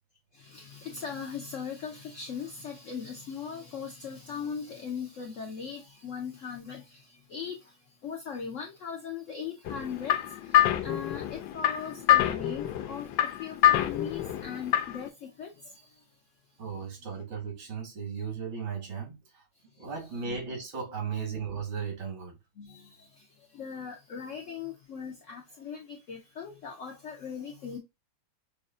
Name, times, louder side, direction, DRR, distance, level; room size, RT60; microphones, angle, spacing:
voice 1, 0.4-6.8 7.3-7.6 8.0-10.2 10.8-13.1 13.4-15.5 20.2-20.4 22.6-22.8 23.6-27.8, left 6 dB, 90° left, 0.6 m, -39 dB
sound 1, 9.7-15.1, left 12 dB, 75° left, 1.2 m, -26 dB
voice 2, 16.6-19.2 19.8-22.4, right 6 dB, 80° right, 2.5 m, -36 dB
6.2 x 2.1 x 2.5 m
omnidirectional pair, 2.1 m